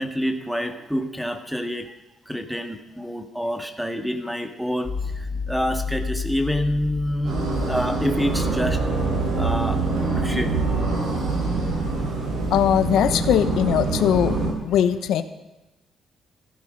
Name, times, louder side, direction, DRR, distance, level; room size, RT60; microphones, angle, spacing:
voice 1, 0.0-1.9 2.3-7.4 7.7-8.8 9.4-10.5 11.4-11.9, equal, ahead, 6 dB, 1.8 m, -27 dB
sound 1, 4.8-13.9 14.1-14.3, left 5 dB, 30° left, 1.9 m, -34 dB
sound 2, 7.2-14.5, right 3 dB, 80° right, 5.5 m, -25 dB
voice 2, 12.5-14.4 14.6-15.2, left 9 dB, 80° left, 11 dB, 0.9 m, -20 dB
15.5 x 13.0 x 5.3 m, 1.0 s
cardioid pair, 90°, 0 cm